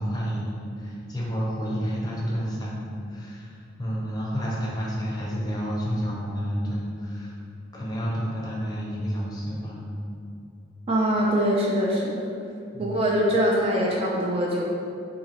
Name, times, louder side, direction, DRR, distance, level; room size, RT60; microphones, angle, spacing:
voice 1, 0.0-7.4 7.7-9.9 12.7-13.0, equal, 20° left, -5 dB, 0.6 m, -30 dB
voice 2, 10.9-12.3 12.8-14.6, equal, 30° right, -3 dB, 0.3 m, -23 dB
4.1 x 2.7 x 2.8 m, 2.5 s
head